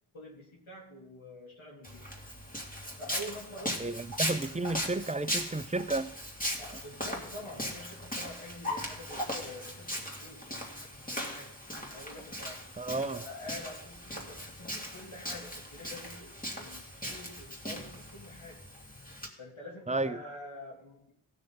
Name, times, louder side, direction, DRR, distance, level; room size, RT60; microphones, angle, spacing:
voice 1, 0.1-2.1 3.0-3.9 4.2-4.4 6.6-11.5 11.9-18.6 19.4-21.1, left 1 dB, 80° left, -3 dB, 3.2 m, -47 dB
Walk footsteps, 1.8-19.3, equal, 15° left, 2.5 m, -39 dB
voice 2, 3.8-6.1 12.8-13.2 19.9-20.2, right 2 dB, 15° right, 13 dB, 0.5 m, -32 dB
17.0 x 6.5 x 4.1 m, 0.71 s
wide cardioid pair, 50°, 48 cm